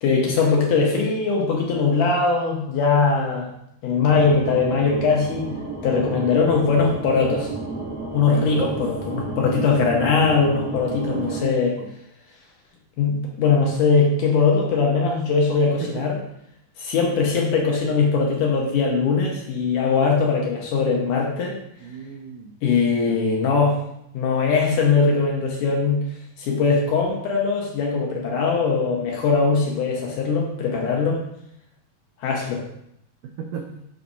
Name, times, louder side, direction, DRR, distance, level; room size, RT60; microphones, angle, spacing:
voice 1, 0.0-3.5 3.8-5.5 5.8-7.5 8.1-11.8 13.0-16.2 16.8-21.6 22.6-23.8 24.1-26.0 26.4-31.2 32.2-32.6, left 4 dB, 70° left, -1 dB, 2.4 m, -21 dB
sound 1, 4.1-11.4, right 2 dB, 10° left, 1.2 m, -32 dB
voice 2, 8.5-8.8 11.1-11.9 15.8-16.1 21.8-22.5 23.1-23.4 24.7-25.3 33.2-33.7, right 6 dB, 85° right, 2 dB, 1.8 m, -34 dB
6.1 x 4.2 x 5.4 m, 0.76 s
omnidirectional pair, 4.4 m